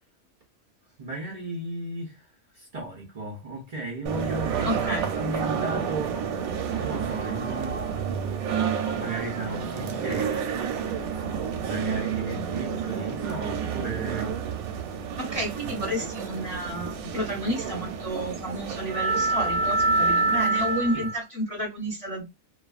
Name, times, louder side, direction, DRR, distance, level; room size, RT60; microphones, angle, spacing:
voice 1, 1.0-2.3 2.5-6.2 6.8-7.8 8.9-10.9 11.6-14.3 20.9-21.1, right 2 dB, 55° right, 0.4 m, -35 dB
sound 1, 4.1-21.2, right 5 dB, 85° right, 1.0 m, -28 dB
voice 2, 4.6-5.1 15.2-22.2, equal, 30° left, 0.8 m, -31 dB
2.4 x 2.3 x 2.3 m
omnidirectional pair, 1.5 m